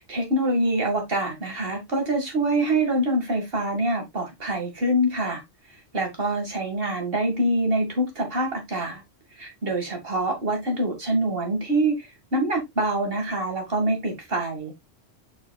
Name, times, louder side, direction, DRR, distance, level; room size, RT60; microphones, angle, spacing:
voice 1, 0.0-5.4 5.9-9.0 9.4-14.7, right 1 dB, 50° right, 2.4 m, -25 dB
7.0 x 5.7 x 2.4 m
omnidirectional pair, 1.2 m